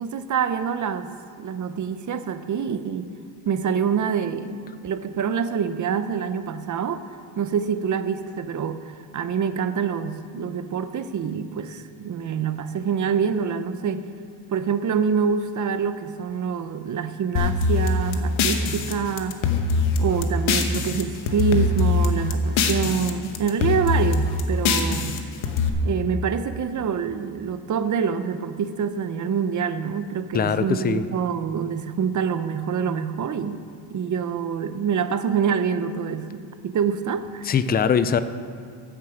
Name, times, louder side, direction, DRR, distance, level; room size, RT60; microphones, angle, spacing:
voice 1, 0.0-3.1 3.4-7.0 7.4-14.1 14.5-19.4 20.0-25.2 25.8-33.6 33.9-37.5, right 7 dB, 40° right, 10 dB, 0.7 m, -26 dB
sound 1, 17.4-21.0 21.3-23.1 23.4-25.7, left 4 dB, 90° left, 1.2 m, -22 dB
voice 2, 30.3-31.0 37.4-38.2, left 7 dB, 25° left, 12 dB, 0.3 m, -21 dB
15.0 x 7.3 x 5.0 m, 2.3 s
cardioid pair, 125°, 46 cm